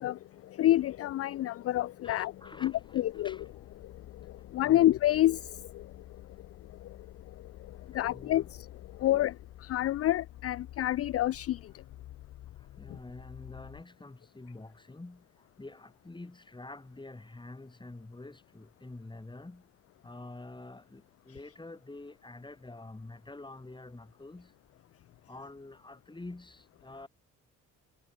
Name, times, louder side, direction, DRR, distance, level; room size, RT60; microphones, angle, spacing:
voice 1, 0.6-2.3 2.6-3.4 4.5-5.4 7.9-8.4 9.0-9.3 9.6-11.6, left 14 dB, 50° left, 0.4 m, -27 dB
voice 2, 2.0-3.7 4.6-4.9 7.9-8.5 9.0-9.2 12.6-19.6 20.0-24.5 25.3-27.1, left 2 dB, 15° left, 5.6 m, -47 dB
sound 1, 2.4-13.8, left 13 dB, 80° left, 5.6 m, -50 dB
cardioid pair, 90°, 30 cm